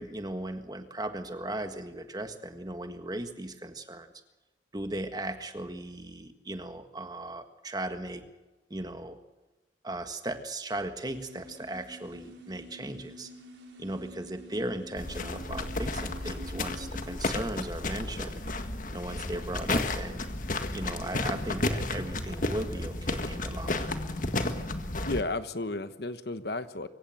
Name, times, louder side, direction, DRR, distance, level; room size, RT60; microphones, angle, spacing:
voice 1, 0.0-4.1 4.7-8.2 8.7-9.2 9.8-13.3 13.8-18.5 18.9-20.2 20.7-24.0, right 1 dB, 20° right, 8 dB, 1.6 m, -37 dB
sound 1, 11.1-17.2, right 1 dB, 85° right, 4.4 m, -47 dB
sound 2, 15.0-25.2, left 2 dB, 45° left, 1.7 m, -32 dB
voice 2, 25.0-26.9, left 2 dB, 65° left, 11 dB, 1.2 m, -33 dB
24.0 x 16.0 x 7.8 m, 1.1 s
head